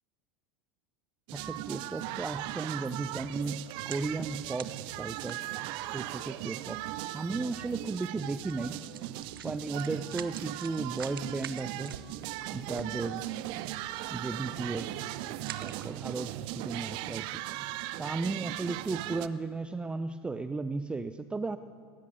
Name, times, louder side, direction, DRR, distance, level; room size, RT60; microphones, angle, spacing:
voice 1, 1.3-5.4 5.9-6.8 7.1-8.8 9.4-12.0 12.5-13.2 14.1-15.0 15.6-17.4 18.0-21.6, right 3 dB, 10° right, 12 dB, 0.6 m, -35 dB
sound 1, 1.3-19.3, right 15 dB, 40° right, 0.8 m, -38 dB
sound 2, 3.3-6.0 6.8-6.9 7.3-7.4 8.4-8.5 8.8-13.4 13.9-14.1 14.4-14.7 15.3-16.2 16.7-16.8, right 10 dB, 60° right, 1.2 m, -46 dB
sound 3, 10.2-17.2, left 2 dB, 55° left, 7.6 m, -61 dB
19.5 x 19.0 x 9.8 m, 2.4 s
figure-of-eight pair, 95°, 13 cm